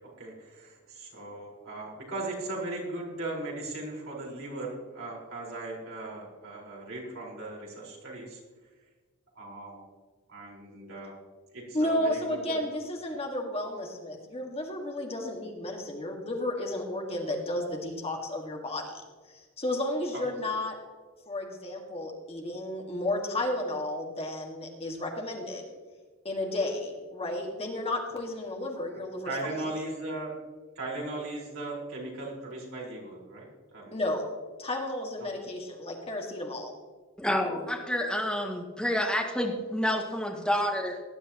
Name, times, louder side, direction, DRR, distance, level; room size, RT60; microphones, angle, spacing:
voice 1, 0.2-8.4 9.3-9.8 10.3-11.1 11.5-12.6 29.2-30.3 30.7-34.0, right 2 dB, 65° right, -4 dB, 4.7 m, -38 dB
voice 2, 11.7-18.9 19.3-20.8 21.3-25.7 26.2-29.5 33.9-34.2 34.6-36.7, left 1 dB, 30° left, 1 dB, 1.9 m, -32 dB
voice 3, 37.2-41.0, equal, 5° left, 0 dB, 1.8 m, -29 dB
19.0 x 11.0 x 3.0 m, 1.4 s
head